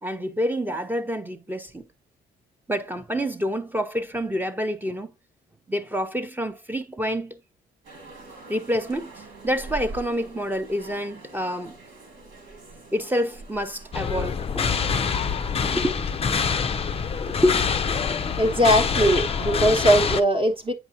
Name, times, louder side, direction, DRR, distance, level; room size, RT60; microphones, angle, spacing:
voice 1, 0.0-1.8 2.7-5.1 5.7-7.4 8.5-9.1 9.4-11.8 12.9-14.8 15.7-15.9 17.2-18.2, equal, 10° right, 0.7 m, -27 dB
sound 1, 7.8-15.6, right 2 dB, 85° right, 2.5 m, -44 dB
sound 2, 13.9-20.2, left 6 dB, 30° left, 0.5 m, -25 dB
voice 2, 18.4-20.7, equal, 25° right, 1.0 m, -20 dB
8.0 x 4.9 x 2.7 m
cardioid pair, 90°, 20 cm